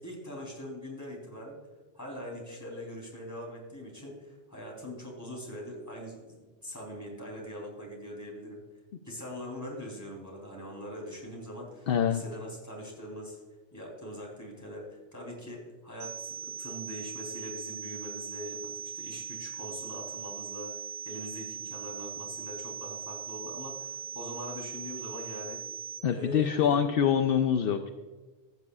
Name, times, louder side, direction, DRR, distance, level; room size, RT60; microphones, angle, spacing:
voice 1, 0.0-1.6 1.9-8.6 9.0-13.4 13.7-25.6 26.1-26.8, equal, 15° left, -2 dB, 3.6 m, -42 dB
voice 2, 11.9-12.2 26.0-27.9, left 8 dB, 65° left, 7 dB, 0.8 m, -25 dB
sound 1, 16.0-26.0, right 8 dB, 70° right, 1.2 m, -40 dB
14.5 x 9.5 x 2.4 m, 1.3 s
omnidirectional pair, 1.1 m